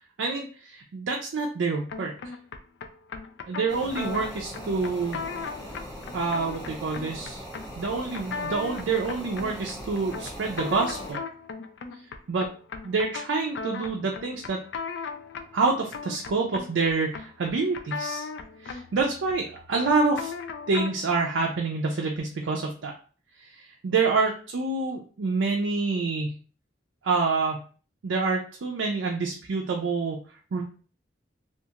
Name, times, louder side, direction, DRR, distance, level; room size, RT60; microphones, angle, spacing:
voice 1, 0.2-2.3 3.5-5.2 6.1-7.4 7.8-11.2 12.3-12.5 12.8-14.6 15.5-18.3 18.6-20.3 20.7-22.9 23.4-26.3 27.0-27.6 28.0-30.2 30.5-30.6, right 4 dB, 80° right, 0 dB, 0.4 m, -27 dB
sound 1, 1.9-21.1, left 5 dB, 65° left, 0.3 m, -38 dB
sound 2, 3.7-11.1, equal, 20° left, 1.1 m, -41 dB
2.4 x 2.3 x 2.8 m, 0.40 s
head